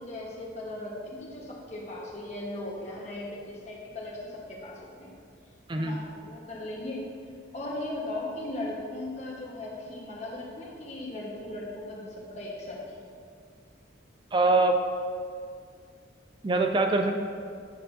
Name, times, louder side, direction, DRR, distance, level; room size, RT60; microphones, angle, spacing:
voice 1, 0.0-5.1 5.8-7.0 7.5-13.0, left 1 dB, 35° left, -4 dB, 1.4 m, -38 dB
voice 2, 14.3-14.8 16.4-17.1, right 2 dB, 25° right, 4 dB, 0.4 m, -23 dB
10.0 x 7.6 x 2.8 m, 2.2 s
head